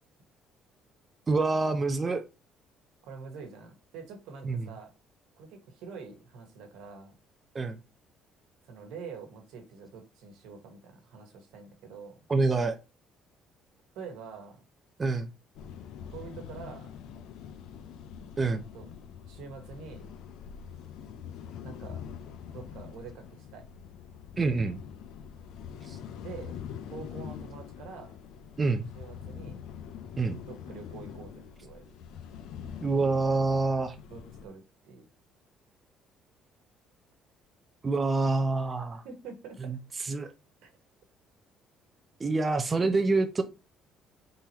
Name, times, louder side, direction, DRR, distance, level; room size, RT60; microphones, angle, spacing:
voice 1, 1.3-2.2 4.4-4.7 7.5-7.8 12.3-12.8 15.0-15.3 18.4-18.6 24.4-24.8 25.9-26.0 28.6-28.9 30.2-30.4 32.8-34.0 37.8-39.0 39.6-39.8 40.0-40.3 42.2-43.4, right 3 dB, 20° right, 0.5 m, -26 dB
voice 2, 3.0-4.9 5.4-7.1 8.6-12.2 13.9-14.6 16.0-17.0 18.5-18.9 19.2-20.1 21.6-22.0 22.5-23.7 26.2-26.6 26.9-28.1 28.9-29.6 30.4-31.9 34.1-35.1 39.0-39.7 40.6-40.7, right 5 dB, 85° right, 1.2 m, -46 dB
sound 1, 15.5-34.5, left 8 dB, 70° left, 0.4 m, -44 dB
3.8 x 2.9 x 4.2 m
cardioid pair, 155°, 0 cm